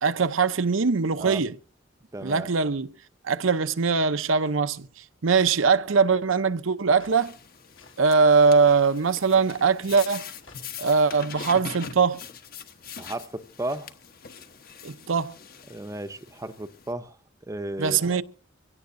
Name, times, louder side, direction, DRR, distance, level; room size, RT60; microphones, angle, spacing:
voice 1, 0.0-1.6 2.2-2.9 3.2-4.9 5.2-7.3 8.0-10.2 10.8-12.2 14.8-15.3 17.8-18.2, right 5 dB, 85° right, 0.8 m, -21 dB
voice 2, 2.1-2.5 13.0-13.9 15.7-17.2 17.5-18.0, right 1 dB, 15° right, 0.7 m, -34 dB
sound 1, 6.9-7.2 7.7-8.0 8.6-8.9 9.4-9.8 10.3-10.6 11.2-11.6, left 4 dB, 80° left, 3.9 m, -53 dB
sound 2, 7.1-16.9, left 6 dB, 50° left, 1.1 m, -43 dB
24.0 x 17.0 x 2.7 m
head